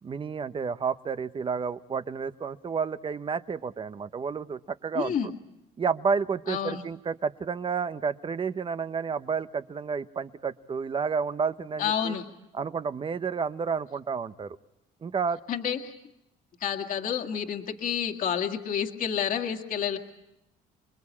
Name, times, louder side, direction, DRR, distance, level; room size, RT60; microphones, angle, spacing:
voice 1, 0.0-5.3 5.8-12.2 12.5-14.6 15.0-15.4, right 5 dB, 30° right, 13 dB, 1.0 m, -30 dB
voice 2, 4.9-5.3 6.5-6.8 11.8-12.2 15.5-16.0 16.6-20.0, left 8 dB, 55° left, 3 dB, 2.1 m, -29 dB
27.5 x 22.0 x 8.7 m, 0.87 s
cardioid pair, 110°, 17 cm